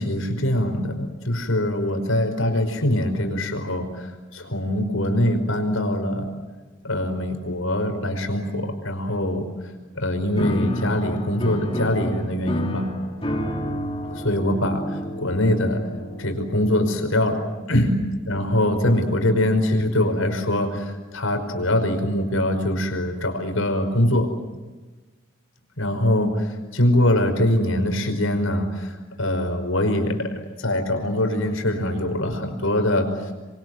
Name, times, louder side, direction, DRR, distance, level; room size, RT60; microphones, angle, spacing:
voice 1, 0.0-6.3 6.8-9.5 9.9-12.9 14.1-15.8 16.2-17.4 17.7-17.9 18.3-24.3 25.8-33.3, left 1 dB, 75° left, 6 dB, 5.2 m, -23 dB
Piano, 10.4-17.1, equal, 25° left, 3.8 m, -30 dB
28.0 x 23.5 x 7.8 m, 1.2 s
head